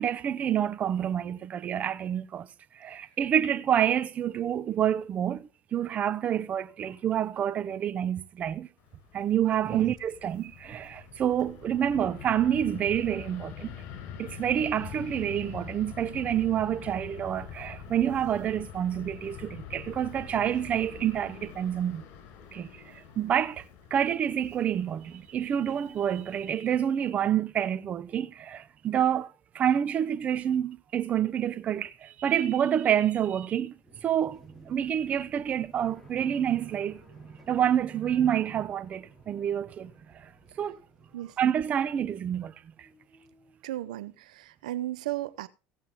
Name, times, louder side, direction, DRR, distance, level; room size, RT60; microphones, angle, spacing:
voice 1, 0.0-2.5 2.7-8.7 9.1-13.7 14.2-22.0 22.5-40.3 40.6-40.8 41.4-42.9, right 9 dB, 40° right, 0.9 m, -28 dB
Fixed-wing aircraft airplane, 8.8-26.6, left 8 dB, 65° left, 4.6 m, -45 dB
sound 1, 33.7-42.5 42.8-43.6, right 1 dB, 10° left, 5.5 m, -57 dB
voice 2, 43.6-45.5, right 14 dB, 90° right, 0.7 m, -35 dB
17.0 x 7.5 x 3.7 m
supercardioid pair, 100°, 4 cm